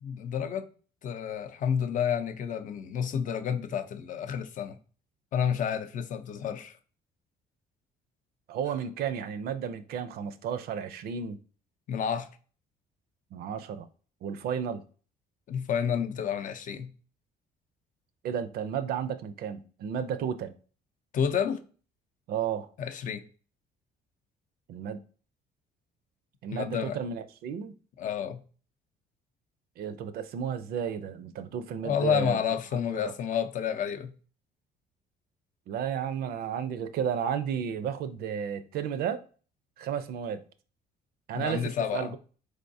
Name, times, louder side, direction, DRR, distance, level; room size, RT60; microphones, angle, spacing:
voice 1, 0.0-0.7 1.0-4.8 5.3-6.8 11.9-12.3 15.5-16.9 21.1-21.6 22.8-23.2 26.5-27.0 28.0-28.4 31.8-34.1 41.3-42.1, left 8 dB, 50° left, 0.5 m, -30 dB
voice 2, 8.5-11.4 13.3-13.9 14.2-14.8 18.2-20.5 22.3-22.7 24.7-25.0 26.4-27.7 29.8-32.4 32.7-33.1 35.7-39.2 39.8-40.4 41.3-42.2, right 8 dB, 65° right, 0.5 m, -33 dB
3.8 x 3.4 x 2.6 m
cardioid pair, 110°, 17 cm